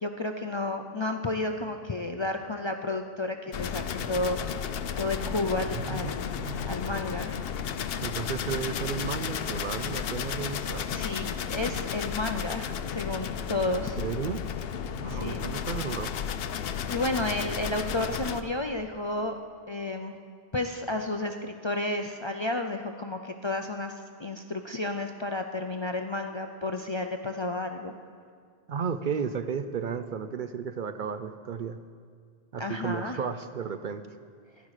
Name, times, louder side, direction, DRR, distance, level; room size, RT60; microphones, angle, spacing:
voice 1, 0.0-4.4 5.0-7.4 10.9-14.0 15.1-15.4 16.9-19.3 19.7-20.1 20.5-27.9 32.6-33.2, left 2 dB, 40° left, 5 dB, 0.4 m, -32 dB
sound 1, 3.5-18.4, left 8 dB, 70° left, 0.8 m, -33 dB
voice 2, 5.6-6.9 8.0-10.9 14.0-14.4 14.9-16.1 28.7-31.8 32.5-34.1, right 6 dB, 60° right, 10 dB, 0.6 m, -34 dB
15.5 x 11.5 x 4.9 m, 2.1 s
omnidirectional pair, 1.1 m